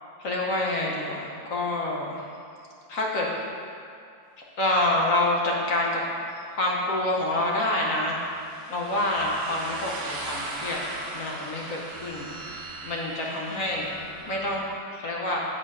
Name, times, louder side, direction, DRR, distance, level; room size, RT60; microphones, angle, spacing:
voice 1, 0.2-2.2 2.9-3.3 4.6-6.0 6.5-8.2 8.7-10.9 11.1-12.3 12.8-13.9 14.3-14.7 14.9-15.4, left 1 dB, 50° left, -2 dB, 1.1 m, -27 dB
sound 1, 6.1-14.3, right 2 dB, 55° right, 0.7 m, -40 dB
sound 2, 9.2-14.8, right 2 dB, 5° right, 0.9 m, -43 dB
7.5 x 4.3 x 5.4 m, 2.4 s
omnidirectional pair, 2.1 m